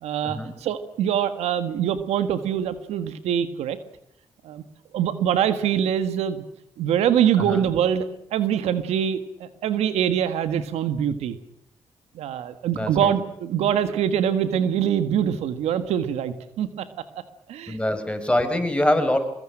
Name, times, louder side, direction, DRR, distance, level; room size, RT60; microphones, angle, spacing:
voice 1, 0.0-3.8 4.4-4.6 4.9-6.4 6.8-8.1 8.3-11.4 12.1-16.8 17.5-17.8, right 9 dB, 85° right, 11 dB, 1.6 m, -24 dB
voice 2, 12.7-13.1 17.7-19.2, left 1 dB, 10° left, 7 dB, 6.4 m, -24 dB
23.5 x 21.0 x 8.9 m, 0.75 s
supercardioid pair, 55°, 11 cm